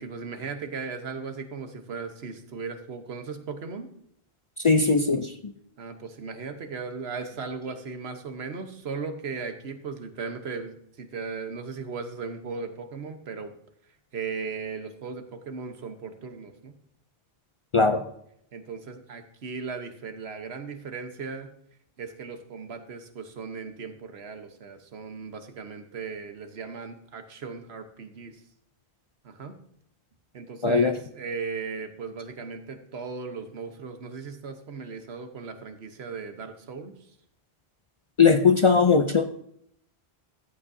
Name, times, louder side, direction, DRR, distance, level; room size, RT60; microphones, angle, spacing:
voice 1, 0.0-3.9 5.8-13.5 14.1-16.7 17.9-18.0 18.5-21.5 22.0-28.4 29.2-29.5 30.3-36.9, right 5 dB, 80° right, 7 dB, 1.3 m, -37 dB
voice 2, 4.6-5.5 17.7-18.0 30.6-30.9 38.2-39.2, left 5 dB, 45° left, 7 dB, 0.4 m, -20 dB
14.0 x 8.8 x 2.7 m, 0.71 s
omnidirectional pair, 1.1 m